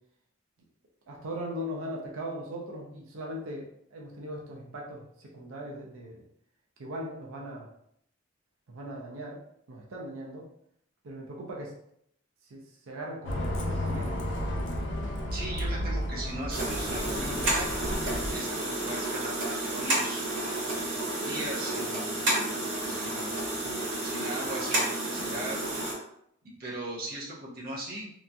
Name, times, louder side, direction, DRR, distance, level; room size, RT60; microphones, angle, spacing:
voice 1, 1.1-6.2 6.8-7.7 8.7-9.4 9.7-10.5 11.0-11.8 12.5-14.1, equal, 85° right, -1 dB, 0.5 m, -39 dB
Bus, 13.2-18.4, left 1 dB, 60° left, 0.5 m, -32 dB
voice 2, 15.3-17.7 18.3-20.3 21.2-22.4 22.9-23.3 24.0-25.6 26.4-28.1, right 1 dB, 45° right, -4 dB, 0.7 m, -38 dB
sound 1, 16.5-25.9, right 2 dB, 70° right, 1.2 m, -31 dB
2.9 x 2.5 x 2.2 m, 0.73 s
head